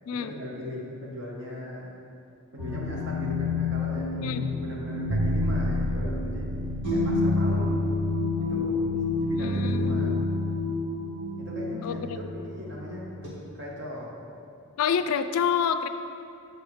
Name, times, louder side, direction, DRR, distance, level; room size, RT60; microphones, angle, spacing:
voice 1, 0.2-1.9 2.5-6.5 6.9-8.0 8.4-10.3 11.4-13.1 13.5-14.2, left 1 dB, 50° right, -4 dB, 1.3 m, -38 dB
sound 1, 2.6-13.3, left 3 dB, 90° right, 1.7 m, -29 dB
sound 2, 5.1-9.2, right 2 dB, 65° right, 0.5 m, -31 dB
voice 2, 9.4-10.3 11.8-12.3 14.8-15.9, left 7 dB, 75° left, 11 dB, 0.3 m, -28 dB
6.9 x 4.7 x 4.9 m, 2.6 s
head